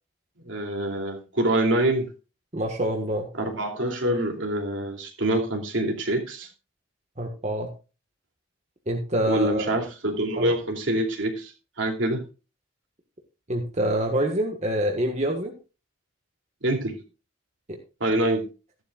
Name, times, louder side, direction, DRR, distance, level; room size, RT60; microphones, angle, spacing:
voice 1, 0.5-2.1 3.4-6.5 9.3-11.5 11.8-12.2 16.6-17.0 18.0-18.4, right 1 dB, 65° right, 2.8 m, -25 dB
voice 2, 2.5-3.3 7.2-7.7 8.9-9.7 10.4-10.5 13.5-15.5, right 1 dB, 35° right, 1.5 m, -26 dB
14.5 x 11.0 x 2.4 m
head